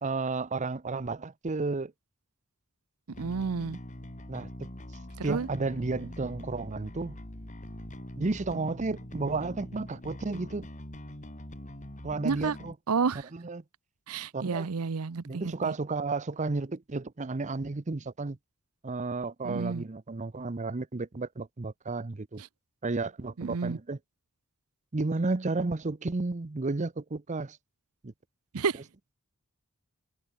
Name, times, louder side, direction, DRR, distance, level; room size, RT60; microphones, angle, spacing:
voice 1, 0.0-1.9 4.3-4.7 5.2-7.2 8.2-10.7 12.0-12.7 13.3-13.6 14.3-14.7 15.3-18.4 18.8-22.4 22.8-24.0 24.9-27.6 28.0-28.1, right 3 dB, 35° right, 0.7 m, -32 dB
Bass guitar, 3.1-12.7, left 1 dB, 35° left, 2.8 m, -43 dB
voice 2, 3.2-3.8 5.2-5.5 12.2-12.6 12.9-13.3 14.1-15.7 19.4-19.8 22.4-22.5 23.4-23.8 28.5-28.8, right 5 dB, 80° right, 0.7 m, -30 dB
head